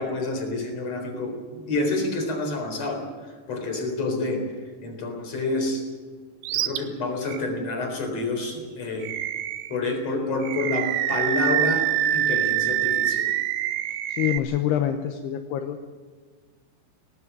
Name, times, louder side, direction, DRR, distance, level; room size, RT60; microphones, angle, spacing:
voice 1, 0.0-3.0 3.5-4.4 4.8-5.8 6.5-9.1 9.7-11.9 12.1-13.3, left 2 dB, 40° left, 4 dB, 4.7 m, -28 dB
Animal, 6.4-6.8 7.3-7.4 9.0-9.8 10.4-14.4, right 12 dB, 80° right, 2.7 m, -25 dB
voice 2, 14.1-15.8, left 11 dB, 75° left, 6 dB, 2.9 m, -26 dB
18.5 x 17.0 x 8.8 m, 1.5 s
omnidirectional pair, 4.8 m